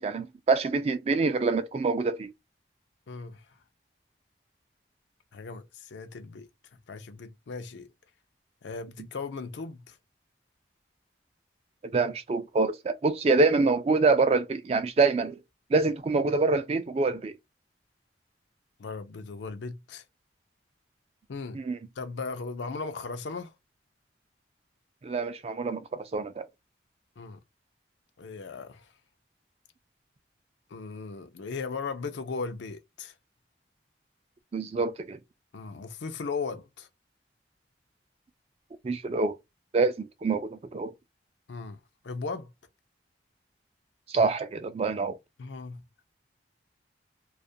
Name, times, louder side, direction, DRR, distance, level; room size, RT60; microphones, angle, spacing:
voice 1, 0.0-2.3 11.9-15.4 15.7-17.3 21.5-21.8 25.0-26.5 34.5-35.2 38.8-39.4 39.7-40.9 44.1-45.2, right 3 dB, 35° right, 0.3 m, -26 dB
voice 2, 3.1-3.4 5.3-6.5 6.9-7.9 8.6-10.0 18.8-20.0 21.3-21.6 22.0-23.5 27.2-27.4 28.2-28.9 30.7-33.1 35.5-36.9 41.5-41.8 42.0-42.5 45.4-45.8, left 4 dB, 85° left, 0.5 m, -37 dB
2.4 x 2.1 x 2.6 m
head